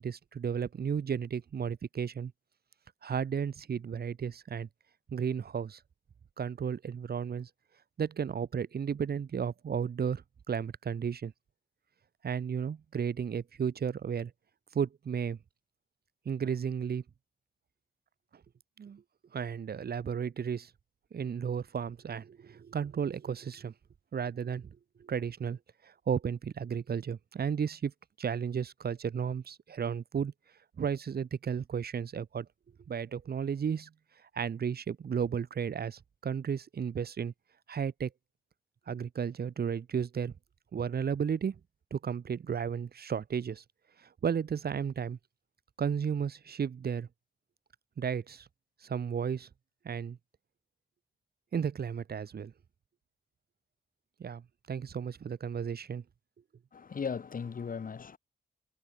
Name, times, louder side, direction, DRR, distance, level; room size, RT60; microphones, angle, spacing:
voice 1, 0.0-2.3 3.0-4.7 5.1-5.8 6.4-7.5 8.0-11.3 12.2-14.3 14.7-15.4 16.3-17.0 18.8-19.0 19.3-20.7 21.1-23.7 24.1-24.7 25.0-27.9 28.2-30.3 30.8-32.5 32.9-33.9 34.3-37.3 37.7-38.1 38.9-40.3 40.7-41.6 41.9-43.6 44.0-45.2 45.8-47.1 48.0-48.5 48.8-49.5 49.8-50.2 51.5-52.5 54.2-56.0, right 7 dB, 70° right, 3.6 m, -33 dB
voice 2, 56.7-58.2, left 6 dB, 55° left, 3.6 m, -37 dB
wide cardioid pair, 115°, 16 cm